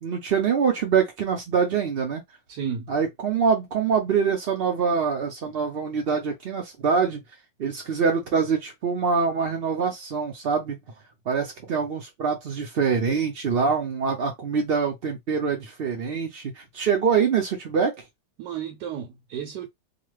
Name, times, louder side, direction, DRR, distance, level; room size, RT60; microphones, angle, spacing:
voice 1, 0.0-2.2 2.9-7.2 7.6-10.8 11.3-18.0, right 6 dB, 65° right, 0.6 m, -24 dB
voice 2, 2.5-2.9 18.4-19.7, right 8 dB, 80° right, 1.3 m, -32 dB
2.9 x 2.4 x 3.2 m
omnidirectional pair, 1.8 m